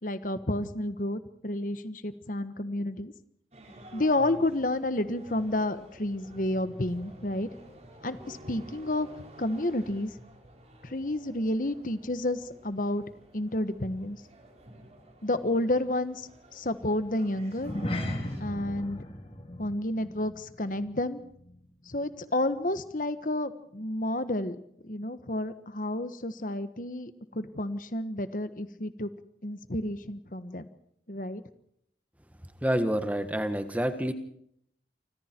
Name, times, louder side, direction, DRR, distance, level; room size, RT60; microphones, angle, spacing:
voice 1, 0.0-3.1 3.9-7.5 8.0-9.1 9.4-10.1 10.8-13.0 13.3-14.2 15.2-17.7 18.4-19.0 19.6-21.2 21.9-24.6 24.8-29.1 29.4-30.7 31.1-31.4, left 1 dB, 45° left, 12 dB, 1.4 m, -30 dB
sound 1, 3.5-18.4, right 1 dB, 35° right, 4.8 m, -51 dB
sound 2, 17.5-22.2 22.4-22.7 23.2-23.3, left 1 dB, 30° left, 3.2 m, -37 dB
voice 2, 32.6-34.1, equal, 10° right, 9 dB, 1.5 m, -28 dB
28.5 x 26.0 x 4.6 m, 0.71 s
head